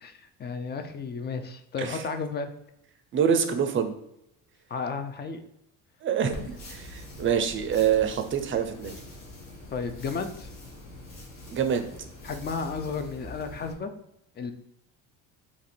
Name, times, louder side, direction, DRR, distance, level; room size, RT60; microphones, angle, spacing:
voice 1, 0.0-2.5 4.7-5.4 9.7-10.5 12.2-13.9 14.4-14.5, left 5 dB, 30° left, 8 dB, 0.4 m, -33 dB
voice 2, 3.1-3.9 6.0-8.9 11.5-11.9, right 8 dB, 35° right, 7 dB, 0.5 m, -26 dB
sound 1, 6.3-13.7, left 1 dB, 60° left, 1.2 m, -44 dB
2.8 x 2.5 x 4.3 m, 0.80 s
cardioid pair, 95°, 37 cm